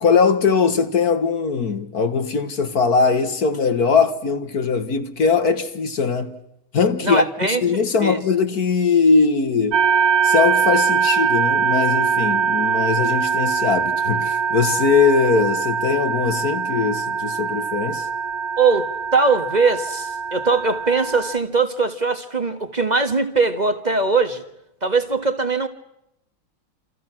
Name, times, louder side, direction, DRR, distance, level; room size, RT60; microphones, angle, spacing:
voice 1, 0.0-6.4 6.7-9.8 10.2-18.1, left 5 dB, 50° left, 1.9 m, -20 dB
voice 2, 7.0-8.2 18.6-24.4 24.8-25.7, right 4 dB, 20° right, 1.5 m, -21 dB
sound 1, 9.7-21.4, right 6 dB, 75° right, 2.2 m, -22 dB
28.5 x 28.0 x 6.1 m
omnidirectional pair, 2.3 m